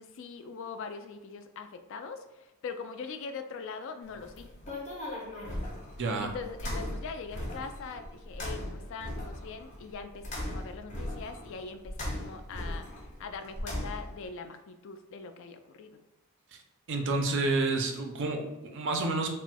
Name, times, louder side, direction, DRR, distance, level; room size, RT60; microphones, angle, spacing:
voice 1, 0.0-4.5 6.2-12.9 13.2-16.0, left 5 dB, 60° left, 8 dB, 0.3 m, -42 dB
sound 1, 4.1-14.3, left 1 dB, 30° left, 0.8 m, -38 dB
voice 2, 6.0-6.3 16.9-19.3, right 3 dB, 55° right, 3 dB, 0.5 m, -29 dB
4.2 x 2.0 x 2.2 m, 1.0 s
head